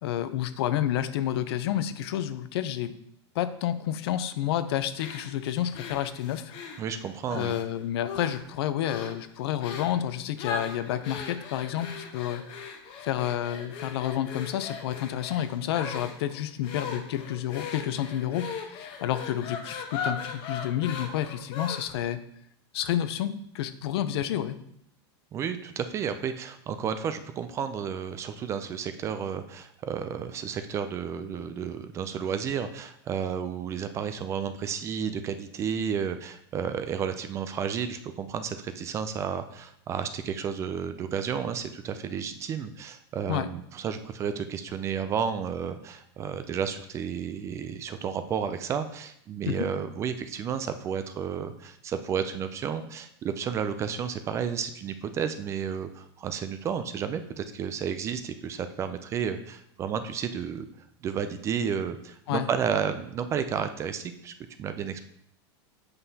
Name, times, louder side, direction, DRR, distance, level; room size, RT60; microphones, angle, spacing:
voice 1, 0.0-2.9 3.3-6.5 7.3-12.4 13.0-22.2 22.7-24.6 43.3-43.5 49.5-49.7 62.3-62.5, left 11 dB, 65° left, 12 dB, 0.6 m, -30 dB
sound 1, 5.0-7.6 8.0-8.5 8.8-9.2 9.6-10.0 10.4-22.1, left 5 dB, 40° left, 1.0 m, -38 dB
voice 2, 6.8-7.6 25.3-60.7 61.0-65.0, right 7 dB, 20° right, 10 dB, 0.3 m, -32 dB
7.8 x 5.5 x 2.8 m, 0.73 s
supercardioid pair, 150°, 14 cm